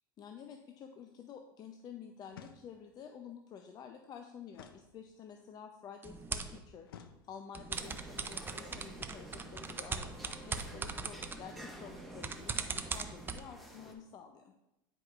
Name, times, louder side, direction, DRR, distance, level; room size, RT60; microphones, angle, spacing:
voice 1, 0.2-14.5, left 7 dB, 35° left, 5 dB, 0.5 m, -50 dB
sound 1, 2.3-3.0 4.5-5.5 6.9-7.7, left 8 dB, 85° left, 0.5 m, -55 dB
sound 2, 6.0-6.6 7.5-13.4, right 4 dB, 20° right, 0.5 m, -40 dB
sound 3, 7.7-13.9, equal, ahead, 1.1 m, -52 dB
9.7 x 4.8 x 2.4 m, 0.93 s
hypercardioid pair, 100°, 12 cm